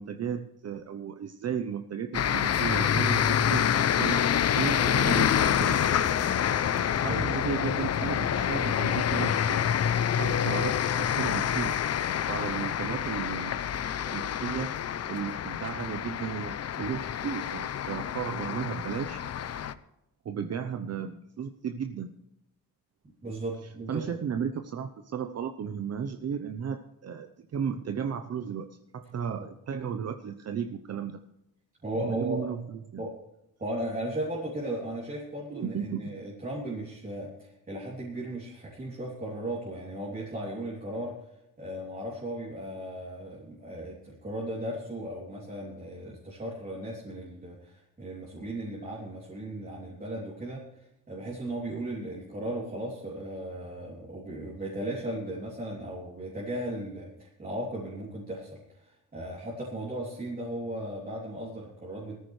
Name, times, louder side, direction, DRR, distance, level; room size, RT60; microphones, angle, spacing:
voice 1, 0.0-6.0 7.0-9.7 10.2-11.7 12.3-13.6 14.1-14.7 15.1-16.5 16.8-19.2 20.2-22.1 23.9-31.2 32.0-33.0 35.5-36.2, right 7 dB, 45° right, 7 dB, 0.8 m, -34 dB
sound 1, 2.1-19.7, left 9 dB, 45° left, 0.6 m, -27 dB
voice 2, 23.2-24.0 29.4-29.5 31.8-32.5 33.0-33.1 33.6-41.3 41.6-62.2, right 1 dB, 25° right, -5 dB, 3.0 m, -36 dB
19.0 x 14.0 x 3.3 m, 0.87 s
wide cardioid pair, 155°, 35 cm